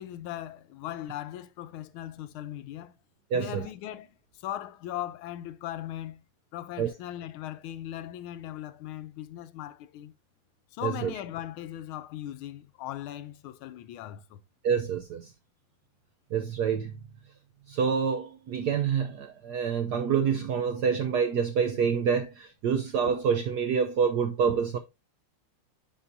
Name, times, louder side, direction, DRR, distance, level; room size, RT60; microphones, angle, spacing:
voice 1, 0.0-2.9 3.3-6.2 6.5-10.1 10.7-14.4, left 12 dB, 80° left, 1.3 m, -39 dB
voice 2, 3.3-3.7 6.8-6.9 10.8-11.1 14.6-15.3 16.3-16.9 17.7-24.8, right 6 dB, 75° right, 0.9 m, -27 dB
10.0 x 4.2 x 2.7 m
omnidirectional pair, 2.4 m